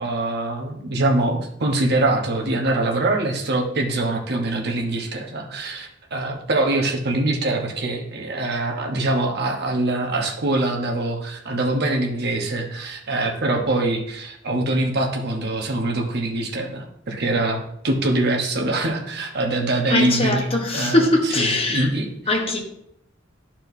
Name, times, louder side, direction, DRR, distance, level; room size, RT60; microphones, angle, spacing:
voice 1, 0.0-22.4, right 2 dB, 55° right, 1.1 m, -24 dB
voice 2, 19.9-21.9 22.3-22.6, left 2 dB, 30° left, 1.0 m, -21 dB
12.5 x 4.4 x 2.7 m
head